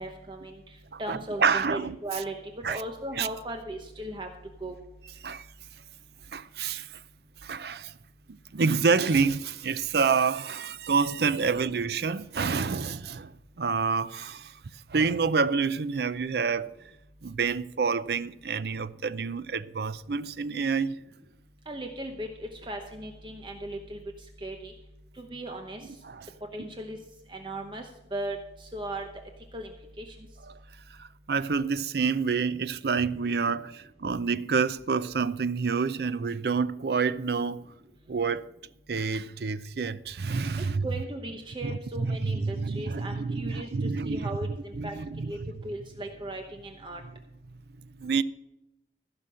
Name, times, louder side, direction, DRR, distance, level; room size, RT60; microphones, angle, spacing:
voice 1, 0.0-2.3 2.7-4.3 4.6-4.7 21.7-24.0 24.4-24.7 25.2-25.9 26.5-27.0 27.3-29.1 29.5-29.7 30.0-30.2 40.6-44.9 45.2-47.0, right 1 dB, 25° right, 0.9 m, -37 dB
voice 2, 0.9-2.0 2.6-2.8 3.2-3.3 5.2-5.5 6.3-7.0 7.4-7.9 8.3-14.6 14.9-16.7 17.2-21.0 26.0-26.3 30.5-30.6 30.9-37.6 38.1-38.5 38.9-40.9 41.6-44.4 44.8-45.3 47.8-48.2, right 5 dB, 65° right, 0.5 m, -28 dB
15.5 x 5.9 x 7.7 m
head